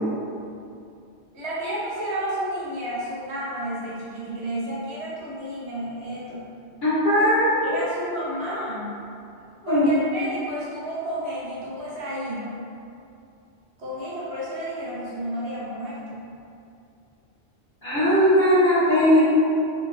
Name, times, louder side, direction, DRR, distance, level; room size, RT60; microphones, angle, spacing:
voice 1, 1.3-6.4 7.2-7.3 7.6-9.0 9.7-12.5 13.8-16.2 19.2-19.3, right 1 dB, 70° right, -7 dB, 1.2 m, -31 dB
voice 2, 6.8-7.8 9.6-9.9 17.8-19.2, equal, 45° left, -12 dB, 1.5 m, -19 dB
4.0 x 2.5 x 3.2 m, 2.5 s
omnidirectional pair, 1.2 m